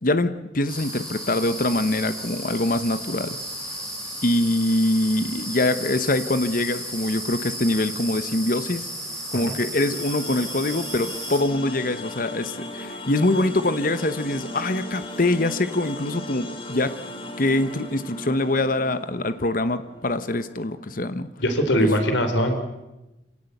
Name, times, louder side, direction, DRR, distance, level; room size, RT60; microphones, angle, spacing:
voice 1, 0.0-3.4 4.2-8.9 9.3-16.9 17.4-21.3 21.8-21.9, left 2 dB, 50° left, 12 dB, 1.1 m, -24 dB
sound 1, 0.7-11.4, equal, 5° left, 7.2 m, -34 dB
sound 2, 9.9-21.0, equal, 30° left, 2.8 m, -37 dB
voice 2, 21.4-22.6, equal, 85° left, 7 dB, 3.7 m, -21 dB
26.0 x 17.0 x 8.0 m, 1.0 s
head